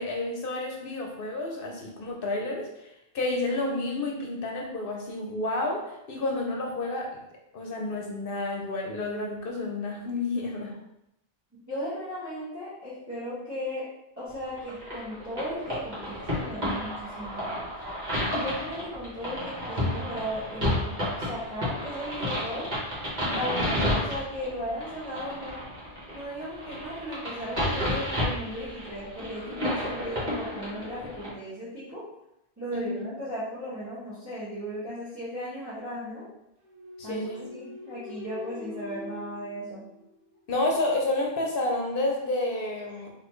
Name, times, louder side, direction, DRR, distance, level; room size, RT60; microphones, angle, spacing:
voice 1, 0.0-2.9 3.1-7.2 7.5-10.8 23.8-23.9 32.7-33.0 37.0-37.5 40.5-43.1, left 2 dB, 65° left, 0 dB, 0.8 m, -30 dB
voice 2, 11.7-13.8 14.2-17.5 18.4-20.9 21.2-22.7 23.3-25.6 26.1-32.0 32.6-36.2 37.0-39.8, equal, 15° right, -14 dB, 1.6 m, -36 dB
sound 1, 14.6-31.3, left 1 dB, 45° right, 1.6 m, -31 dB
sound 2, 36.6-40.5, left 3 dB, 70° right, 1.1 m, -43 dB
4.1 x 2.8 x 3.1 m, 0.85 s
omnidirectional pair, 1.0 m